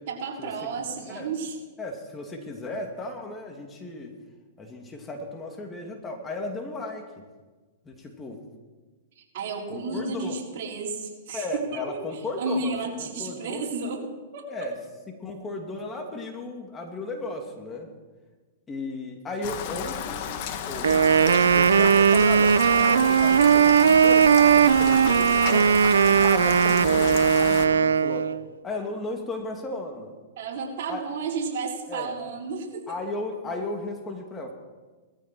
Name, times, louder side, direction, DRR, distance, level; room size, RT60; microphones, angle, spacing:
voice 1, 0.1-1.6 9.2-14.0 14.3-14.5 30.4-32.9, right 4 dB, 60° right, -2 dB, 4.1 m, -32 dB
voice 2, 1.8-4.1 4.6-7.2 7.8-8.4 9.7-10.4 11.3-13.6 14.5-14.8 15.1-17.9 18.7-20.2 20.7-25.7 26.2-28.3 28.6-30.1 30.9-31.1 31.9-32.2 32.9-34.5, left 2 dB, 20° left, 2 dB, 2.6 m, -35 dB
Rain, 19.4-27.7, left 8 dB, 50° left, 1.7 m, -32 dB
Wind instrument woodwind instrument, 20.8-28.4, right 7 dB, 85° right, 0.5 m, -18 dB
19.0 x 14.0 x 4.5 m, 1.3 s
hypercardioid pair, 120°, 0 cm